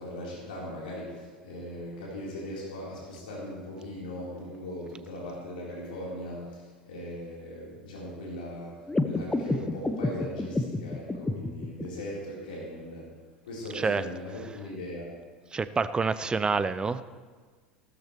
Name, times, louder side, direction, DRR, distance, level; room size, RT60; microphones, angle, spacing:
voice 1, 0.0-13.1 13.5-15.1, left 1 dB, 70° left, -5 dB, 3.8 m, -39 dB
sound 1, 8.9-11.9, left 2 dB, 10° left, 0.8 m, -30 dB
voice 2, 15.5-17.0, right 4 dB, 15° right, 14 dB, 0.5 m, -27 dB
15.0 x 13.0 x 3.2 m, 1.5 s
figure-of-eight pair, 75°, 5 cm